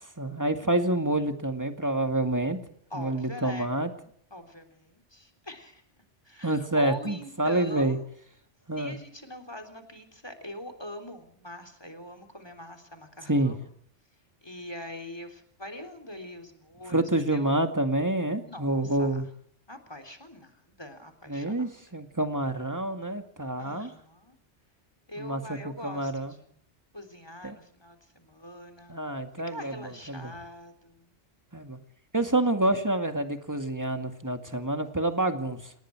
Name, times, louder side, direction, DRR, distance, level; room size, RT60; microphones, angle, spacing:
voice 1, 0.2-2.6 2.9-3.9 6.4-8.0 8.7-9.0 13.3-13.5 16.9-19.2 21.3-23.9 25.2-26.3 27.4-27.6 28.9-30.3 31.5-31.8 32.1-35.7, right 1 dB, 15° right, 6 dB, 2.2 m, -28 dB
voice 2, 2.9-3.7 4.3-5.8 6.2-8.0 8.7-13.6 14.4-17.6 18.5-19.2 19.7-21.9 23.6-24.4 25.1-26.4 26.9-29.1 29.5-31.1, equal, 20° left, 6 dB, 3.7 m, -43 dB
29.0 x 19.0 x 4.7 m, 0.63 s
omnidirectional pair, 1.2 m